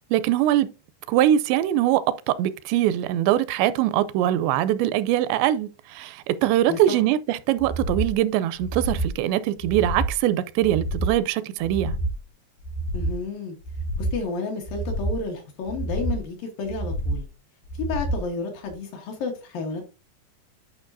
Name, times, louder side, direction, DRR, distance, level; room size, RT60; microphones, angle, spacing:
voice 1, 0.1-0.7 1.1-12.0, right 12 dB, 85° right, 2.8 m, -22 dB
sound 1, 7.6-8.1 8.6-9.2 9.6-10.2 10.6-11.2 11.6-12.2 12.6-13.2 13.6-14.2 14.6-15.2 15.6-16.2 16.6-17.2 17.7-18.2 18.7-18.8, right 1 dB, 85° left, 3.7 m, -28 dB
voice 2, 12.9-13.6 14.0-17.3 17.8-19.8, left 4 dB, 65° left, 2.5 m, -31 dB
11.0 x 5.2 x 2.6 m
omnidirectional pair, 5.0 m